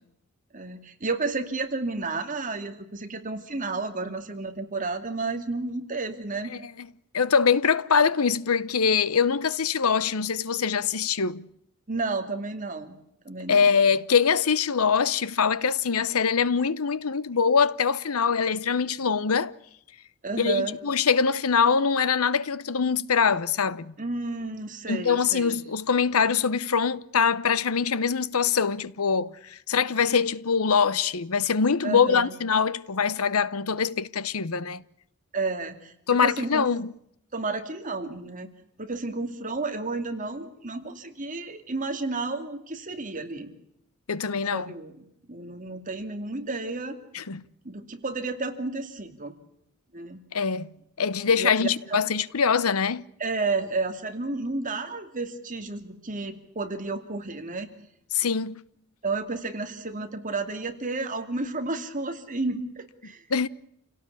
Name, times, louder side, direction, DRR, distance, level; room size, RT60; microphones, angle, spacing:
voice 1, 0.5-6.5 11.9-13.0 13.2-13.6 20.2-20.8 24.0-25.6 31.8-32.3 35.3-36.7 37.3-38.5 38.8-43.5 44.5-47.0 47.6-49.4 49.9-50.2 51.3-52.0 53.2-57.7 59.0-63.2, right 3 dB, 40° right, 2.6 m, -31 dB
voice 2, 7.1-11.5 13.5-19.5 20.4-23.9 24.9-34.8 36.1-36.9 44.1-44.7 47.1-47.4 50.3-50.7 51.0-53.0 58.1-58.6 63.3-63.5, left 6 dB, 85° left, 0.9 m, -23 dB
28.5 x 17.5 x 8.5 m
head